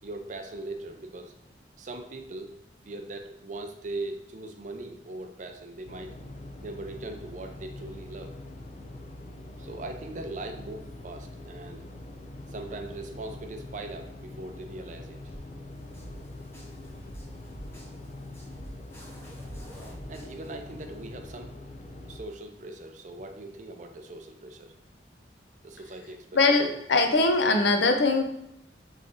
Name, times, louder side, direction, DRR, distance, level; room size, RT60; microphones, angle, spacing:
voice 1, 0.0-1.3 1.8-2.6 2.9-6.2 6.6-8.3 9.6-11.8 12.5-15.2 16.1-16.2 20.1-21.5 22.1-24.7 25.6-26.3, right 2 dB, 45° right, 5 dB, 0.5 m, -40 dB
sound 1, 5.8-22.2, left 1 dB, 40° left, 0.4 m, -44 dB
sound 2, 15.3-21.3, equal, 15° left, 1.0 m, -47 dB
voice 2, 26.3-28.2, left 3 dB, 85° left, 5 dB, 0.6 m, -22 dB
3.7 x 3.2 x 3.8 m, 0.81 s
head